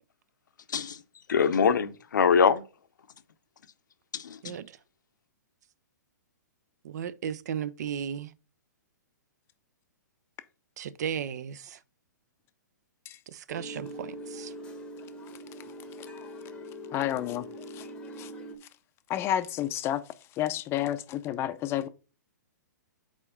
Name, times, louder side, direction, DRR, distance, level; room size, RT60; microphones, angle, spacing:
voice 1, 1.3-2.6 4.1-4.5, left 6 dB, 75° left, 0.6 m, -23 dB
voice 2, 4.4-4.8 6.8-8.3 10.8-11.8 13.3-14.5, right 8 dB, 60° right, 0.5 m, -35 dB
sound 1, 13.5-18.6, equal, 10° left, 0.9 m, -42 dB
voice 3, 16.9-17.4 17.8-17.9 18.2-18.3 19.1-20.0 20.4-21.9, left 12 dB, 25° left, 0.5 m, -30 dB
4.4 x 4.4 x 5.4 m
hypercardioid pair, 125°, 10 cm